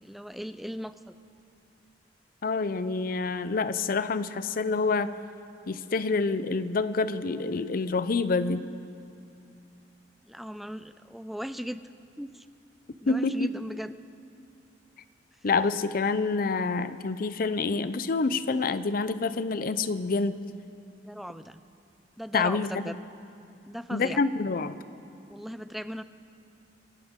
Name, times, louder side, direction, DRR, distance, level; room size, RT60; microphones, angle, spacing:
voice 1, 0.0-1.2 10.2-11.8 12.2-12.5 13.0-13.9 21.0-21.6 22.2-23.0 23.7-24.2 25.3-26.0, equal, ahead, 12 dB, 0.4 m, -37 dB
voice 2, 2.4-5.2 5.7-8.6 13.1-13.5 15.4-20.4 22.3-22.9 23.9-24.8, left 4 dB, 55° left, 13 dB, 0.5 m, -27 dB
27.0 x 11.5 x 3.7 m, 2.6 s
head